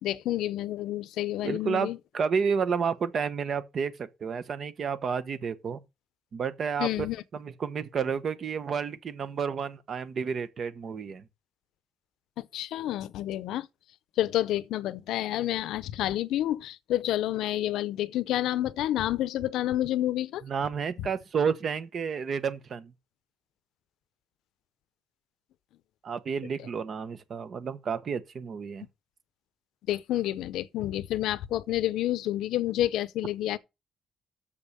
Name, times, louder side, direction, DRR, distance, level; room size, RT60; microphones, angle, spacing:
voice 1, 0.0-2.0 6.8-7.2 12.4-13.7 14.2-20.4 21.0-21.1 29.9-33.6, left 13 dB, 85° left, 0.6 m, -29 dB
voice 2, 1.4-5.8 6.3-7.1 7.3-11.2 20.4-22.9 26.0-28.9, right 6 dB, 55° right, 1.1 m, -31 dB
7.0 x 5.4 x 6.7 m
cardioid pair, 90°, 0 cm